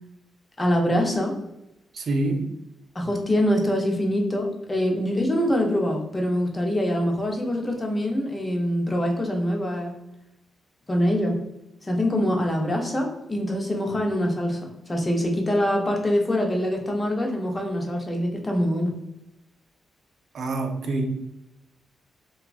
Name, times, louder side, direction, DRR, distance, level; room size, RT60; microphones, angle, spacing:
voice 1, 0.6-1.4 2.9-9.9 10.9-11.4 11.8-19.0, equal, 30° left, 2 dB, 0.7 m, -24 dB
voice 2, 1.9-2.5 20.3-21.1, right 2 dB, 65° right, 4 dB, 0.5 m, -26 dB
2.9 x 2.3 x 2.4 m, 0.90 s
supercardioid pair, 55°, 0 cm